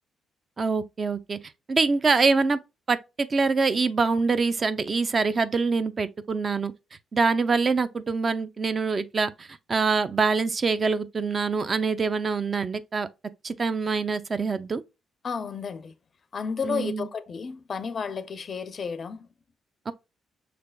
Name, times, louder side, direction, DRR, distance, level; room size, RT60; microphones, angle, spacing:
voice 1, 0.6-1.4 1.7-2.6 2.9-6.7 7.1-13.1 13.4-14.8 16.6-17.1 19.9-20.0, right 4 dB, 35° right, 0.4 m, -25 dB
voice 2, 15.2-15.9 16.3-19.3, left 5 dB, 45° left, 0.4 m, -32 dB
5.8 x 3.3 x 2.2 m
cardioid pair, 90°, 0 cm